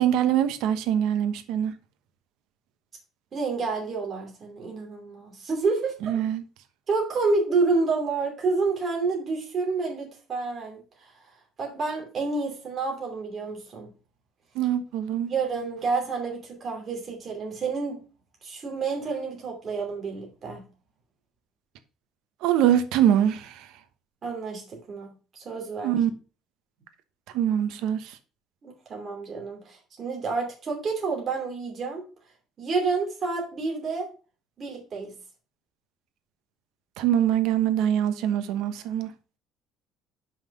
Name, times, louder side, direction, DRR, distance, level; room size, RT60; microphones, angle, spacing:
voice 1, 0.0-1.7 6.0-6.4 14.5-15.3 22.4-23.5 25.8-26.1 27.3-28.0 37.0-39.1, right 10 dB, 75° right, 1.0 m, -23 dB
voice 2, 3.3-5.9 6.9-10.8 11.6-13.9 15.3-18.0 18.4-20.6 24.2-25.1 25.4-26.0 28.6-32.0 32.6-34.1 34.6-35.1, right 4 dB, 30° right, 2.8 m, -29 dB
5.7 x 5.6 x 5.4 m
cardioid pair, 175°, 0 cm